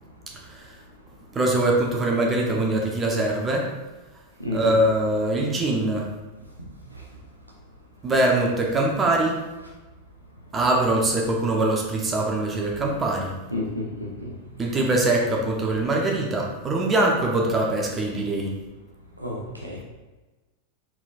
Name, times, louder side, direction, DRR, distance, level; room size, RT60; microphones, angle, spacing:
voice 1, 0.5-0.8 1.3-3.7 4.5-6.1 8.0-9.4 10.5-13.4 14.6-18.5, right 2 dB, 20° right, -1 dB, 0.8 m, -23 dB
voice 2, 4.4-4.7 13.5-14.3 19.2-19.8, left 2 dB, 90° right, -3 dB, 0.8 m, -30 dB
4.3 x 4.3 x 2.4 m, 1.2 s
figure-of-eight pair, 90°, 0 cm